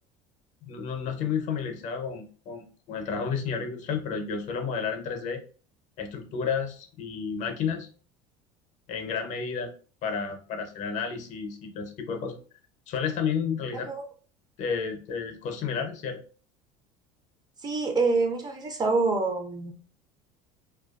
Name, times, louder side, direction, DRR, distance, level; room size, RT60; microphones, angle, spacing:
voice 1, 0.6-5.4 6.0-7.9 8.9-9.7 10.0-12.4 12.9-13.9 14.6-16.2, left 6 dB, 55° left, 5 dB, 0.6 m, -31 dB
voice 2, 17.6-19.7, right 3 dB, 25° right, 4 dB, 0.5 m, -26 dB
2.3 x 2.2 x 2.4 m, 0.40 s
supercardioid pair, 115°, 15 cm